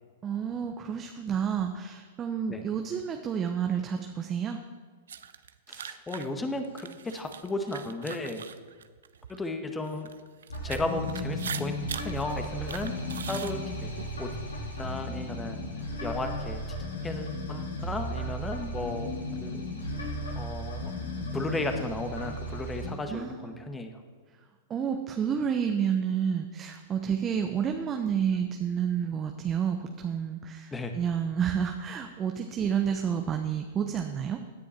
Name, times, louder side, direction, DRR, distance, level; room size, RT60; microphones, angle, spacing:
voice 1, 0.2-4.6 23.1-23.7 24.7-34.4, right 7 dB, 25° right, 5 dB, 0.9 m, -30 dB
sound 1, 5.1-9.4 9.9-14.1, right 8 dB, 70° right, 0.7 m, -41 dB
voice 2, 5.7-8.5 9.3-10.1 10.6-12.9 13.3-13.9 14.2-14.3 14.8-15.6 16.0-16.6 17.0-19.1 19.4-19.6 20.3-20.9 21.3-24.0 30.7-30.9, left 2 dB, 15° left, 6 dB, 1.5 m, -34 dB
sound 2, 10.5-22.9, left 1 dB, 85° left, 3.7 m, -35 dB
17.0 x 10.0 x 4.5 m, 1.5 s
figure-of-eight pair, 105°, 0 cm